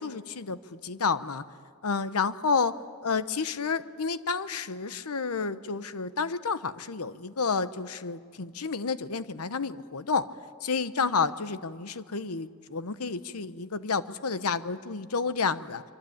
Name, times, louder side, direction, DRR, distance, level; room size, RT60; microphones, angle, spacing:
voice 1, 0.0-1.4 1.8-2.8 3.0-10.3 10.6-15.8, left 5 dB, 85° left, 13 dB, 0.9 m, -30 dB
25.0 x 24.5 x 8.7 m, 2.2 s
head